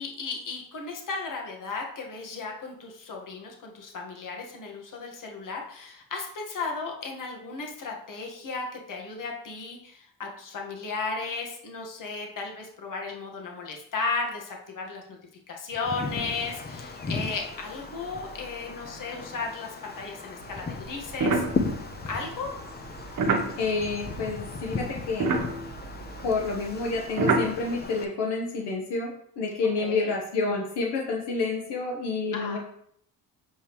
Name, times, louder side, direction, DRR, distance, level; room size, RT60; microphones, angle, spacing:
voice 1, 0.0-15.2 15.5-21.4 22.0-22.5 29.8-30.1 32.3-32.6, left 4 dB, 50° left, 0 dB, 1.6 m, -35 dB
Wind, 15.7-28.0, left 3 dB, 25° left, 0.8 m, -36 dB
sound 1, 20.4-24.7 24.9-27.8, right 3 dB, 50° right, 1.1 m, -29 dB
voice 2, 23.6-25.3 26.2-32.6, left 3 dB, 85° left, 0 dB, 1.2 m, -29 dB
7.3 x 5.2 x 3.1 m, 0.68 s
cardioid pair, 90°, 40 cm